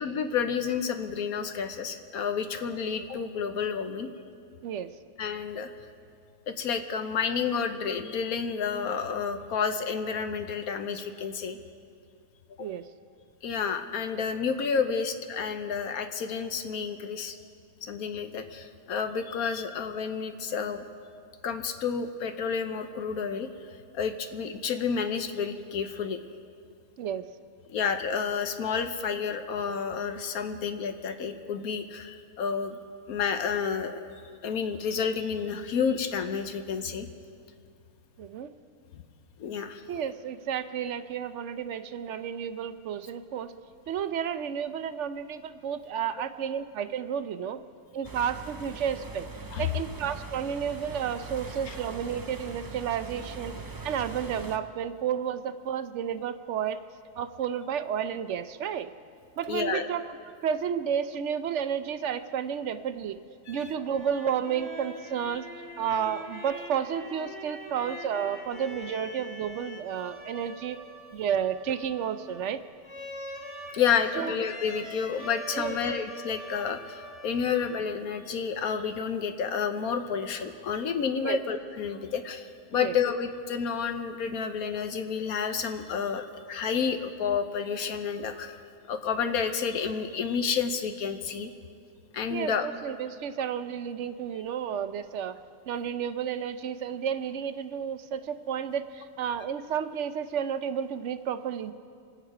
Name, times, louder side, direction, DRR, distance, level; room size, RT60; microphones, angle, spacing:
voice 1, 0.0-4.1 5.2-5.7 6.5-11.6 12.6-12.7 13.4-17.4 17.8-20.8 21.4-23.5 23.9-26.2 27.7-32.8 33.1-34.0 34.4-37.1 39.4-39.8 49.5-49.7 51.7-51.8 59.5-59.9 63.5-63.7 65.3-65.4 73.7-88.6 88.9-91.5 92.1-92.7, left 6 dB, 70° left, 7 dB, 1.3 m, -30 dB
voice 2, 38.2-38.5 39.9-43.5 43.9-47.6 47.9-49.3 49.6-53.5 53.8-56.8 57.2-58.9 59.4-60.0 60.4-63.2 63.5-65.4 65.8-70.8 71.1-72.6 74.2-74.3 75.5-75.8 81.2-81.4 82.7-83.0 92.3-95.3 95.7-101.7, right 8 dB, 60° right, 11 dB, 0.8 m, -31 dB
sound 1, 48.0-54.6, right 3 dB, 35° right, 0.3 m, -41 dB
sound 2, 63.6-78.3, left 1 dB, 20° left, 2.3 m, -43 dB
25.5 x 8.9 x 4.9 m, 2.3 s
omnidirectional pair, 1.6 m